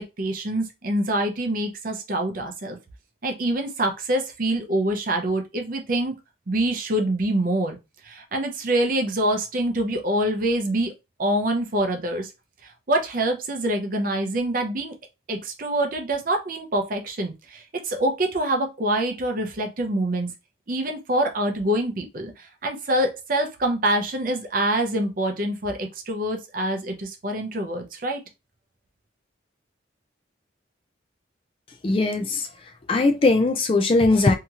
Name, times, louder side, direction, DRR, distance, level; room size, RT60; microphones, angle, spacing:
voice 1, 0.2-2.8 3.2-6.1 6.5-7.8 8.0-10.9 11.2-12.3 12.6-15.0 15.3-20.3 20.7-28.2, right 1 dB, 45° right, 0.6 m, -25 dB
voice 2, 31.8-32.5 32.9-34.4, left 3 dB, 30° left, 0.3 m, -19 dB
2.8 x 2.8 x 2.4 m
head